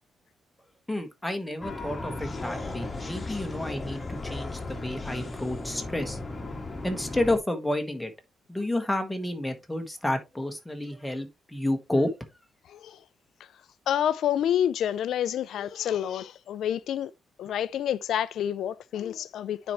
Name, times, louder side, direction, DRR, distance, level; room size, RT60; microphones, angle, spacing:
voice 1, 0.9-6.2 6.8-8.1 8.5-12.1, left 1 dB, 5° left, 1.3 m, -30 dB
sound 1, 1.6-7.4, left 2 dB, 20° left, 1.5 m, -36 dB
voice 2, 12.7-13.0 13.9-17.1 17.4-19.7, left 10 dB, 75° left, 0.3 m, -28 dB
9.5 x 4.4 x 3.0 m
cardioid pair, 125°, 0 cm